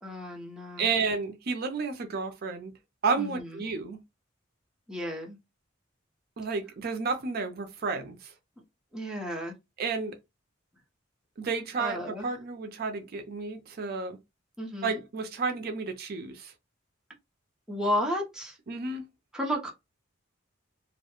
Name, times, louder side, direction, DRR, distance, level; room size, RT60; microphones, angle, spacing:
voice 1, 0.0-0.9 3.2-3.3 4.9-5.4 8.9-9.5 11.8-12.3 14.6-15.0 17.7-18.5 19.3-19.7, equal, 5° right, 0.6 m, -32 dB
voice 2, 0.8-2.7 3.0-4.0 6.4-8.3 9.8-10.2 11.4-14.2 14.8-16.5 18.7-19.0, right 4 dB, 50° right, 0.4 m, -31 dB
2.3 x 2.1 x 2.8 m
head